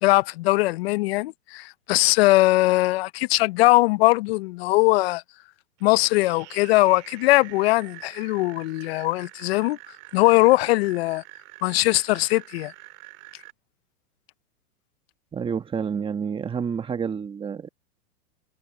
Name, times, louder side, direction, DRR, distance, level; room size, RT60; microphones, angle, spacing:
voice 1, 0.0-5.2 5.8-9.8 10.1-11.2 11.6-12.7, left 20 dB, 45° left, 0.5 m, -20 dB
sound 1, 5.8-13.5, right 19 dB, 35° right, 2.0 m, -46 dB
voice 2, 15.3-17.7, right 6 dB, 10° right, 1.4 m, -29 dB
hypercardioid pair, 140°, 46 cm